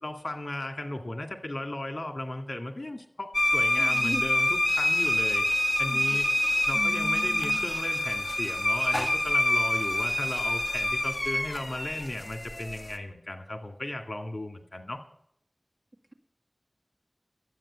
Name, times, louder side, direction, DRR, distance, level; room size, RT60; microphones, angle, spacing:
voice 1, 0.0-5.4 5.8-6.3 6.7-15.0, left 1 dB, 70° left, 5 dB, 2.2 m, -36 dB
sound 1, 3.3-13.0, left 1 dB, 40° left, 1.5 m, -26 dB
voice 2, 3.8-4.2 5.9-6.2 6.7-7.7, right 1 dB, 40° right, 2 dB, 2.0 m, -38 dB
12.5 x 8.7 x 8.6 m, 0.69 s
wide cardioid pair, 40°, 0 cm